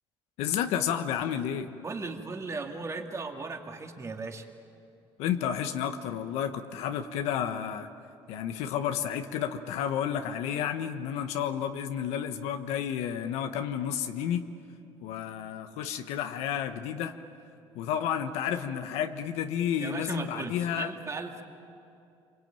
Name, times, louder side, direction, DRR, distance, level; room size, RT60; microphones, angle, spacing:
voice 1, 0.4-1.7 5.2-7.9 8.3-14.4 15.0-17.1 17.7-20.9, left 9 dB, 85° left, 7 dB, 1.3 m, -31 dB
voice 2, 1.8-4.5 19.8-21.4, right 3 dB, 30° right, 3 dB, 2.6 m, -37 dB
26.0 x 23.5 x 9.1 m, 2.6 s
cardioid pair, 105°, 11 cm